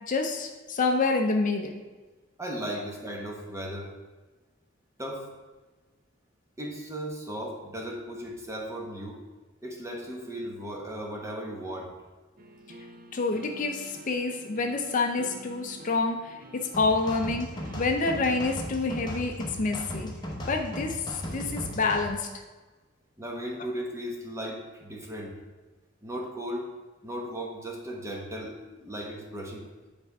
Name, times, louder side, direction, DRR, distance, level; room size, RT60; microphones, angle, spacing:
voice 1, 0.1-1.8 13.1-20.1 20.5-22.3, left 3 dB, 40° left, 3 dB, 0.5 m, -28 dB
voice 2, 2.4-3.9 5.0-5.3 6.6-9.2 9.6-11.9 23.2-25.4 26.0-26.7 27.0-29.7, equal, 15° right, 0 dB, 1.1 m, -36 dB
sound 1, 12.4-18.5, right 1 dB, 45° right, 0.6 m, -48 dB
sound 2, 16.7-22.1, equal, 20° left, 1.0 m, -37 dB
9.6 x 3.4 x 4.7 m, 1.2 s
head